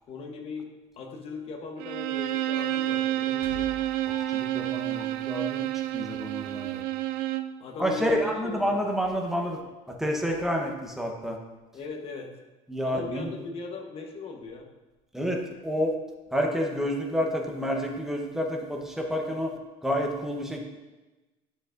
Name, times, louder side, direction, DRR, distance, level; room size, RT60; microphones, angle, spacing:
voice 1, 0.1-3.7 7.6-8.8 11.7-12.4 12.8-14.7, left 4 dB, 40° left, 2 dB, 1.1 m, -39 dB
Bowed string instrument, 1.8-7.6, right 14 dB, 80° right, 0.4 m, -29 dB
sound 1, 3.4-5.5, left 2 dB, 80° left, 1.5 m, -44 dB
voice 2, 4.3-6.8 7.8-9.6 9.9-11.4 12.7-13.4 15.1-15.9 16.3-19.6 19.8-20.6, equal, 5° right, 1 dB, 0.9 m, -29 dB
9.9 x 6.6 x 2.5 m, 1.1 s
cardioid pair, 140°, 14 cm